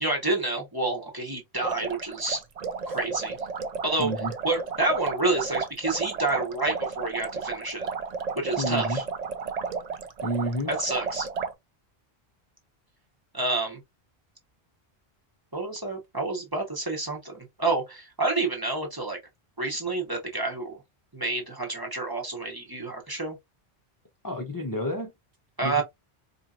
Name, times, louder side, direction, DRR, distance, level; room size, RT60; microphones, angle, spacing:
voice 1, 0.0-2.4 2.9-3.4 3.8-4.1 4.4-7.9 8.4-9.0 10.7-11.3 13.3-13.8 15.5-19.2 19.6-20.8 21.1-23.4 25.6-25.8, right 2 dB, 20° right, 1.0 m, -29 dB
sound 1, 1.6-11.5, right 5 dB, 50° right, 0.5 m, -32 dB
voice 2, 4.0-4.3 8.6-9.0 10.2-10.7 24.2-25.1 25.6-25.8, equal, 25° left, 0.6 m, -30 dB
4.4 x 2.8 x 2.4 m
omnidirectional pair, 1.1 m